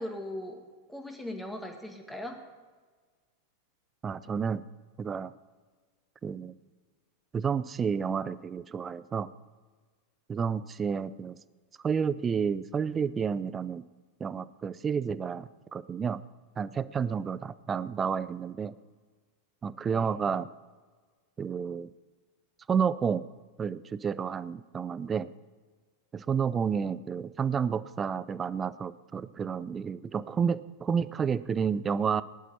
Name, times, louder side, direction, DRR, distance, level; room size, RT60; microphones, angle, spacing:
voice 1, 0.0-2.4 19.9-20.1, left 1 dB, 5° left, 4 dB, 2.0 m, -39 dB
voice 2, 4.0-4.6 5.0-5.3 6.2-6.6 7.3-9.3 10.3-11.4 11.8-13.8 14.2-16.2 16.6-18.7 19.6-20.5 21.4-21.9 22.7-23.3 23.6-25.3 26.1-32.2, right 6 dB, 20° right, 17 dB, 0.5 m, -30 dB
19.5 x 11.0 x 4.3 m, 1.4 s
figure-of-eight pair, 90°, 0 cm